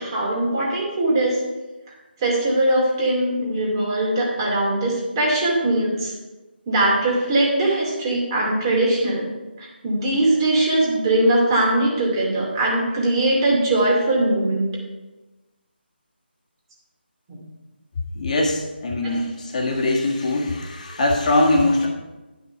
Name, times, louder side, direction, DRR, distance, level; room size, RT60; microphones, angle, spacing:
voice 1, 0.0-1.4 2.2-6.1 6.7-9.3 9.6-14.7 17.3-17.4 19.0-19.1, right 1 dB, 25° right, -2 dB, 2.5 m, -21 dB
voice 2, 18.1-21.9, left 2 dB, 40° left, -1 dB, 1.7 m, -21 dB
11.0 x 5.6 x 5.7 m, 1.1 s
figure-of-eight pair, 160°, 6 cm